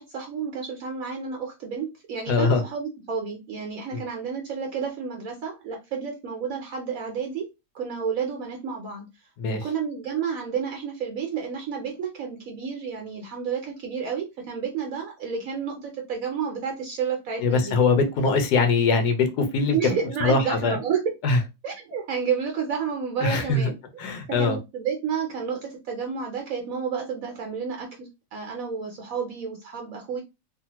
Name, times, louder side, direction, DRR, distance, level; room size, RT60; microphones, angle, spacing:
voice 1, 0.0-7.5 7.7-9.1 9.5-17.8 19.7-21.0 21.6-24.1 24.4-30.2, right 6 dB, 65° right, 1.0 m, -31 dB
voice 2, 2.3-2.6 3.9-4.0 9.4-9.6 17.4-19.8 20.2-20.8 21.2-21.4 23.2-23.7 24.0-24.6, left 4 dB, 80° left, 1.3 m, -22 dB
3.3 x 2.1 x 2.8 m
omnidirectional pair, 1.7 m